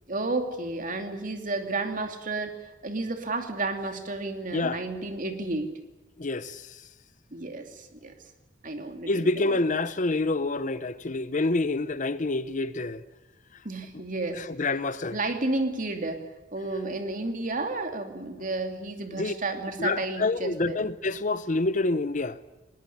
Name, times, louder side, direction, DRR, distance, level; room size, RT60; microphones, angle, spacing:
voice 1, 0.1-5.7 7.3-8.1 8.6-9.6 13.6-14.4 15.1-16.2 16.5-20.8, right 2 dB, 45° right, 2.7 m, -32 dB
voice 2, 6.2-6.7 9.1-13.0 14.3-15.2 19.1-19.3 19.8-22.4, left 2 dB, 45° left, 0.8 m, -27 dB
20.5 x 19.0 x 10.0 m
head